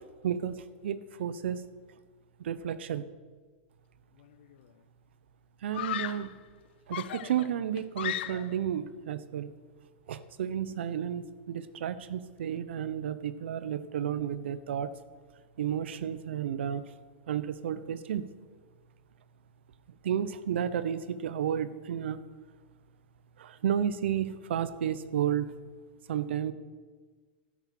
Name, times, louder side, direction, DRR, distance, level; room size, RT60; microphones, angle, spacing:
voice 1, 0.2-0.5 0.8-1.6 2.4-3.0 5.6-6.3 6.9-9.5 10.1-14.9 15.6-16.8 17.3-18.3 20.0-22.2 23.4-25.5 26.1-26.5, right 9 dB, 85° right, 15 dB, 0.7 m, -32 dB
Screaming, 4.2-4.6 5.7-6.4 6.9-8.7, left 13 dB, 70° left, 0.5 m, -36 dB
10.5 x 8.0 x 7.5 m, 1.5 s
supercardioid pair, 140°, 6 cm